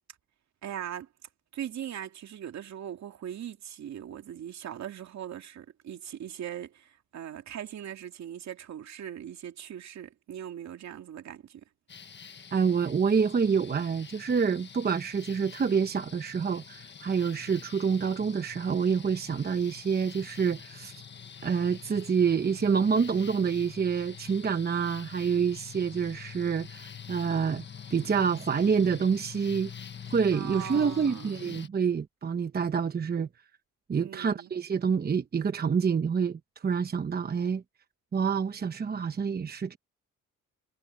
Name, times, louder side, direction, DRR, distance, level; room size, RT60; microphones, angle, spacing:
voice 1, 0.6-1.1 1.5-11.6 30.3-31.4 34.0-34.5, right 10 dB, 65° right, 2.7 m, -40 dB
sound 1, 11.9-31.7, left 7 dB, 35° left, 1.4 m, -46 dB
voice 2, 12.5-21.0 21.4-27.6 27.9-29.7 30.1-33.3 33.9-37.6 38.1-39.8, right 6 dB, 30° right, 1.0 m, -27 dB
cardioid pair, 90°, 30 cm